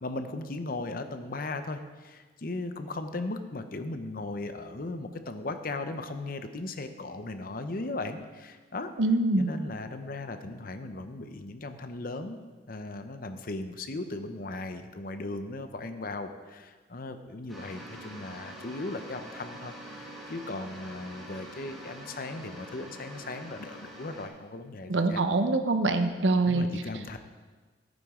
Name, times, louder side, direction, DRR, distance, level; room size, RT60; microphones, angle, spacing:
voice 1, 0.0-8.9 9.4-25.2 26.5-27.2, left 2 dB, 50° left, 8 dB, 0.8 m, -37 dB
voice 2, 9.0-9.5 24.9-26.7, right 2 dB, 80° right, 7 dB, 0.9 m, -24 dB
sound 1, 17.5-24.3, right 1 dB, ahead, 2.3 m, -45 dB
14.5 x 9.2 x 3.7 m, 1.4 s
head